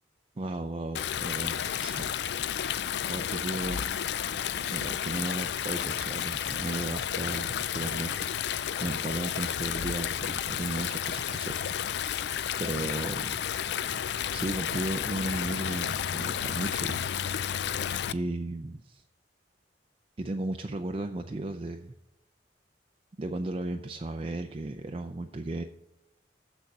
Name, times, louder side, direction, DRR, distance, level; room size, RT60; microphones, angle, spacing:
voice 1, 0.4-2.6 3.1-3.8 4.5-8.3 8.8-12.0 12.6-13.4 14.3-17.5 18.1-19.0 20.2-21.9 23.2-25.6, right 2 dB, 30° right, 6 dB, 0.4 m, -35 dB
Stream, 0.9-18.1, left 9 dB, 65° left, 0.4 m, -32 dB
7.2 x 6.4 x 6.6 m, 0.86 s
head